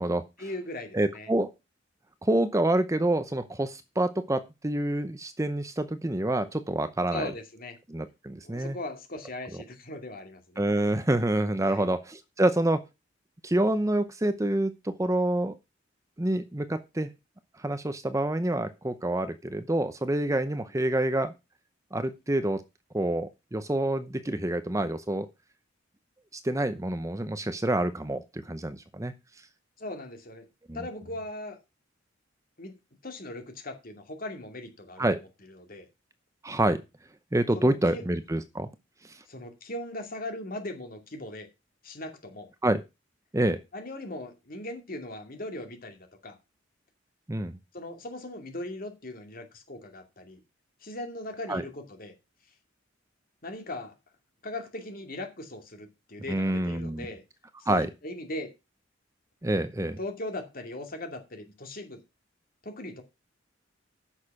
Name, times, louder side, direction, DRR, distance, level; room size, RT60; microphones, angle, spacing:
voice 1, 0.4-1.3 7.1-7.8 8.4-10.6 11.6-11.9 29.8-30.5 30.7-31.6 32.6-32.8 33.0-35.1 35.6-35.9 37.5-38.0 39.3-41.5 41.8-42.5 43.7-46.4 47.7-50.4 50.8-52.1 53.4-53.9 54.4-57.2 57.6-58.5 60.0-62.0 62.6-63.0, left 1 dB, 50° left, 5 dB, 2.4 m, -39 dB
voice 2, 0.9-1.5 2.2-7.3 7.9-8.8 10.6-12.8 13.4-15.6 16.2-17.1 17.6-21.3 21.9-22.6 22.9-25.3 26.4-29.1 30.7-30.9 35.0-35.2 36.4-36.8 37.3-38.7 39.0-39.2 42.6-42.8 43.3-43.6 47.3-47.6 51.5-51.6 56.3-57.1 57.6-57.9 59.4-60.0, right 1 dB, 15° right, 11 dB, 0.7 m, -27 dB
9.9 x 6.6 x 6.0 m, 0.26 s
head